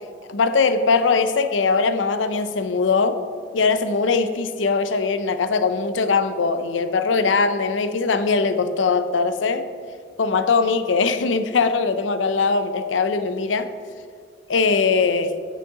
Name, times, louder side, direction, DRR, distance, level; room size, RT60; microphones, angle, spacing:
voice 1, 0.3-3.2 3.5-9.7 10.2-13.7 14.5-15.4, left 4 dB, 90° left, 10 dB, 0.5 m, -21 dB
8.7 x 6.7 x 3.7 m, 2.1 s
head